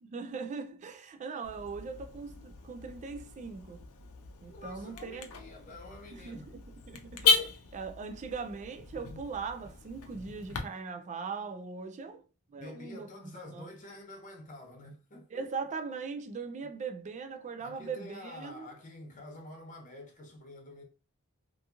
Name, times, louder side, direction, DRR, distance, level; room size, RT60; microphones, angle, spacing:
voice 1, 0.0-3.8 4.4-5.3 6.1-6.6 6.9-7.4 7.7-12.2 12.5-13.1 13.3-13.7 15.3-18.7, right 5 dB, 35° right, 0.3 m, -40 dB
Car / Alarm, 1.4-10.6, left 5 dB, 80° left, 0.5 m, -35 dB
voice 2, 4.4-6.5 7.2-7.5 12.5-15.5 17.6-20.8, left 1 dB, 35° left, 0.8 m, -48 dB
2.8 x 2.5 x 2.4 m
head